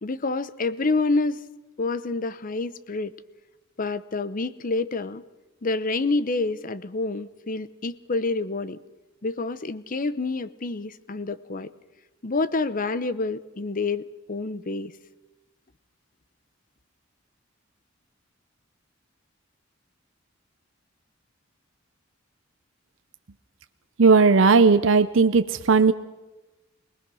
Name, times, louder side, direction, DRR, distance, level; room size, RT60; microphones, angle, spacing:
voice 1, 0.0-1.4 1.8-3.1 3.8-5.2 5.6-8.8 9.2-11.7 12.2-14.9, left 3 dB, 40° left, 15 dB, 0.8 m, -28 dB
voice 2, 24.0-25.9, right 4 dB, 70° right, 10 dB, 0.6 m, -17 dB
24.5 x 19.0 x 6.2 m, 1.1 s
head